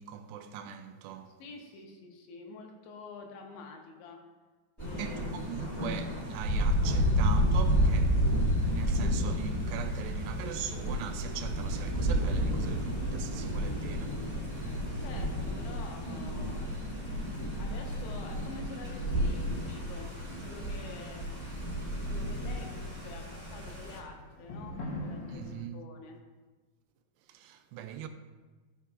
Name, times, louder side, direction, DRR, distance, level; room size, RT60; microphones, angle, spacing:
voice 1, 0.0-1.4 5.0-15.0 25.3-25.8 27.3-28.1, right 8 dB, 85° right, 2.5 m, -41 dB
voice 2, 1.4-4.2 4.8-5.5 15.0-16.6 17.6-20.1 20.4-21.3 22.0-26.2, left 3 dB, 80° left, 3.3 m, -47 dB
Thunder, 4.8-24.0, equal, 10° left, 1.3 m, -31 dB
sound 1, 9.1-25.6, left 1 dB, 65° left, 2.1 m, -49 dB
14.5 x 5.4 x 2.4 m
omnidirectional pair, 5.1 m